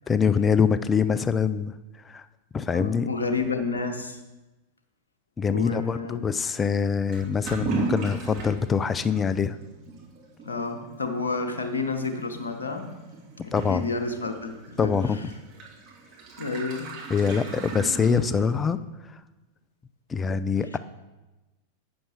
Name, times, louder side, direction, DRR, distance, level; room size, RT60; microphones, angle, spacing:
voice 1, 0.1-1.7 2.0-2.2 2.5-3.1 5.4-9.6 13.5-13.9 14.8-15.2 17.1-18.8 20.1-20.8, left 6 dB, 20° left, 13 dB, 0.4 m, -24 dB
voice 2, 2.7-4.2 5.5-6.3 10.4-12.9 13.4-15.2 16.4-16.9, left 4 dB, 75° left, 6 dB, 1.0 m, -30 dB
Toilet flush / Liquid, 7.1-18.8, right 4 dB, 40° right, 2.5 m, -37 dB
8.8 x 6.5 x 4.4 m, 1.1 s
figure-of-eight pair, 90°, 0 cm